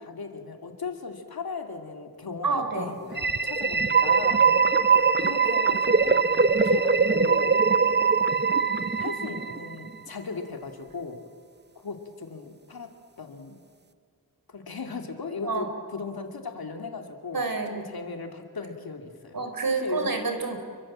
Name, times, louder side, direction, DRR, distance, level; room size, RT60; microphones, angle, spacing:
voice 1, 0.0-4.5 5.2-6.2 6.6-7.6 9.0-11.2 11.7-12.9 13.2-13.6 14.5-17.4 17.7-19.4 19.8-20.1, left 4 dB, 80° left, 4 dB, 2.8 m, -37 dB
voice 2, 2.4-2.9 4.3-4.6 7.8-7.9 15.4-15.7 17.3-17.8 19.3-20.6, right 4 dB, 70° right, 5 dB, 4.2 m, -29 dB
sound 1, 3.1-9.9, right 5 dB, 30° right, 0.8 m, -22 dB
29.0 x 23.5 x 7.6 m, 2.1 s
wide cardioid pair, 90°, 36 cm